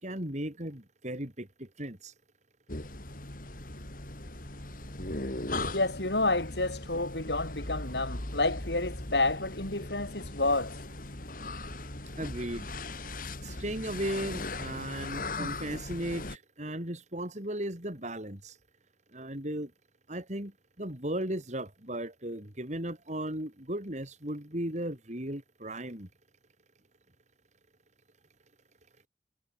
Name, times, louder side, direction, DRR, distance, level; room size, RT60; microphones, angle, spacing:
voice 1, 0.0-2.1 12.2-12.7 13.4-18.5 19.1-19.7 20.1-20.5 20.8-26.1, right 1 dB, 40° right, 5.1 m, -36 dB
sound 1, 2.7-16.4, left 2 dB, 50° left, 3.7 m, -39 dB
voice 2, 5.7-10.8, left 2 dB, 70° left, 6.9 m, -29 dB
head